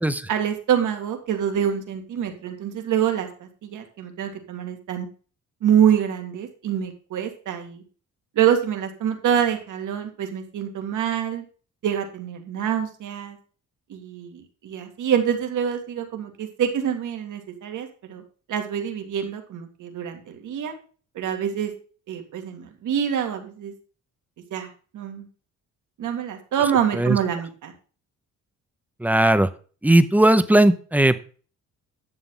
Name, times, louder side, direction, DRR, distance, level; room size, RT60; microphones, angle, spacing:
voice 1, 0.3-5.1 5.6-7.8 8.4-11.4 11.8-13.4 13.9-18.2 18.5-20.7 21.1-21.7 22.1-23.7 24.5-25.3 26.0-27.7, right 9 dB, 75° right, 4 dB, 2.1 m, -26 dB
voice 2, 29.0-29.5 29.8-31.2, right 1 dB, 5° right, 11 dB, 0.7 m, -17 dB
11.0 x 7.7 x 3.8 m, 0.39 s
cardioid pair, 125°, 31 cm